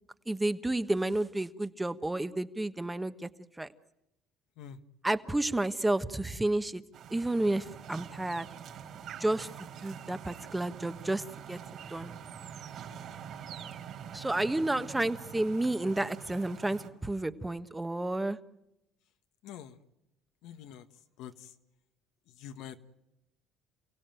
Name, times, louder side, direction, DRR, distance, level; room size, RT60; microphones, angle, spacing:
voice 1, 0.3-3.3 3.6-3.7 5.0-6.8 7.1-8.5 9.2-9.5 9.8-11.6 11.9-12.1 14.1-18.4, right 2 dB, 10° right, 11 dB, 1.2 m, -31 dB
sound 1, 6.9-16.9, right 8 dB, 55° right, 4.2 m, -45 dB
voice 2, 19.4-19.8 20.4-20.9 21.2-21.5 22.4-22.8, left 9 dB, 75° left, 8 dB, 1.5 m, -45 dB
28.5 x 16.5 x 9.2 m, 0.88 s
supercardioid pair, 85°, 0 cm